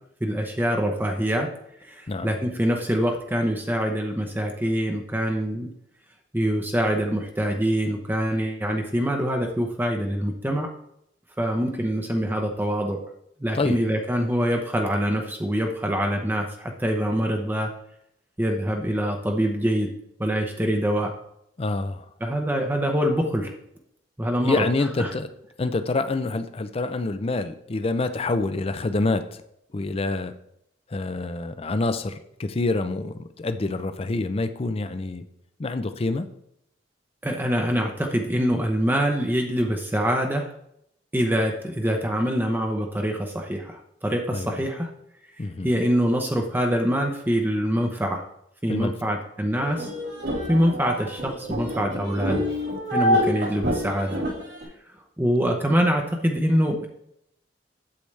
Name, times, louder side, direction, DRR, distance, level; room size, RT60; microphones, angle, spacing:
voice 1, 0.2-1.5 1.8-5.7 6.3-10.7 11.4-13.0 13.4-17.7 18.4-19.9 20.2-21.1 22.2-23.5 24.2-24.6 25.0-25.1 37.2-40.5 41.1-44.9 45.6-48.3 48.6-49.9 50.5-52.4 52.9-54.2 55.2-56.9, equal, 10° right, 3 dB, 0.7 m, -24 dB
voice 2, 21.6-22.0 24.4-25.3 25.6-29.4 29.7-30.3 30.9-35.2 35.6-36.3 44.3-44.6 45.4-45.7 48.7-49.1, left 2 dB, 35° left, 10 dB, 0.5 m, -27 dB
sound 1, 49.5-54.6, equal, 85° right, 3.4 m, -27 dB
8.6 x 7.7 x 3.3 m, 0.76 s
head